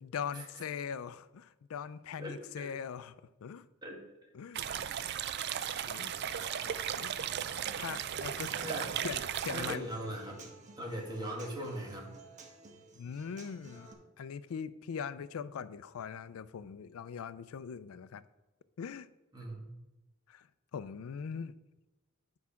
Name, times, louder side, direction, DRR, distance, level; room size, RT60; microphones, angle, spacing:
voice 1, 0.0-3.1 3.4-3.7 4.3-4.6 5.9-6.1 6.9-7.1 7.6-8.5 9.0-9.9 13.0-13.9 14.2-18.2 18.8-19.1 20.3-20.5 20.7-21.5, left 7 dB, 85° left, 15 dB, 0.4 m, -41 dB
voice 2, 2.2-2.7 3.8-4.0 8.5-8.9 9.5-12.1 19.3-19.7, equal, 20° right, -1 dB, 1.8 m, -40 dB
sound 1, 4.5-9.8, right 9 dB, 50° right, 0.4 m, -36 dB
Human voice / Acoustic guitar, 5.9-13.9, right 3 dB, 35° right, 1.2 m, -54 dB
9.6 x 4.7 x 5.7 m, 1.0 s
head